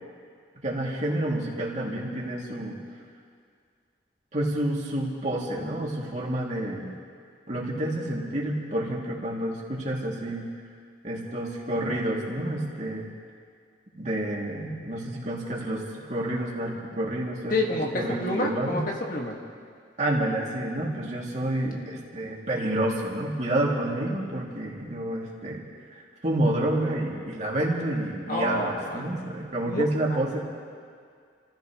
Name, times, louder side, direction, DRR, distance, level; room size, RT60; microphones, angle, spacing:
voice 1, 0.6-2.8 4.3-6.9 7.5-10.4 11.0-13.1 14.0-15.8 16.1-18.8 20.0-25.6 25.9-30.4, right 1 dB, 40° right, -4 dB, 2.8 m, -29 dB
voice 2, 17.5-19.4 28.3-29.1 29.7-29.8 30.1-30.2, left 2 dB, 45° left, 0 dB, 1.9 m, -28 dB
29.5 x 15.5 x 3.2 m, 2.1 s
head